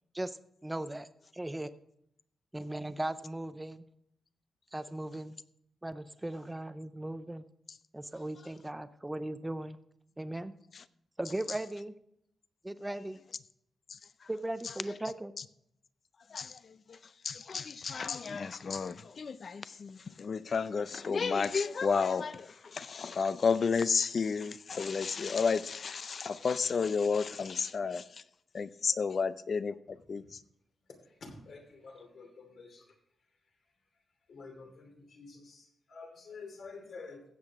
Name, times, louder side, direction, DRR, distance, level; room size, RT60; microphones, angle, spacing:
voice 1, 0.6-1.1 1.4-1.7 2.5-3.8 4.7-5.4 5.8-7.4 7.9-9.8 10.2-10.5 11.2-11.9 12.6-13.2 14.3-15.3, right 1 dB, 10° right, 13 dB, 0.5 m, -37 dB
voice 2, 17.2-28.0 28.5-30.2, left 5 dB, 40° left, 15 dB, 0.5 m, -32 dB
voice 3, 31.2-32.9 34.3-37.2, left 4 dB, 60° left, 2 dB, 2.8 m, -49 dB
15.5 x 7.9 x 3.6 m, 0.74 s
wide cardioid pair, 160°, 0 cm